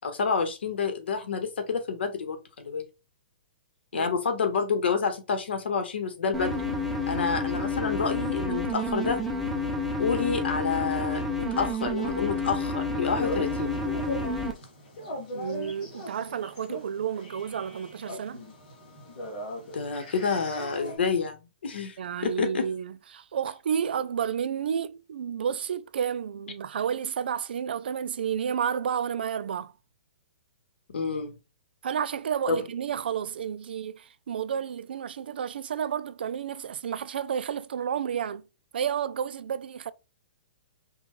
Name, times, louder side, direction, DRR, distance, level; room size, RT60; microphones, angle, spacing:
voice 1, 0.0-2.8 3.9-6.6 7.1-9.2 10.0-13.8 19.7-22.0 22.2-22.7 30.9-31.4 32.5-32.6, left 5 dB, 80° left, 1.2 m, -28 dB
sound 1, 6.3-14.5, left 2 dB, ahead, 0.4 m, -29 dB
sound 2, 13.2-21.0, left 1 dB, 35° left, 2.2 m, -39 dB
voice 2, 15.3-18.4 22.0-29.7 31.8-38.4 38.7-39.9, right 8 dB, 65° right, 0.4 m, -31 dB
5.2 x 2.3 x 3.1 m
hypercardioid pair, 180°, 6 cm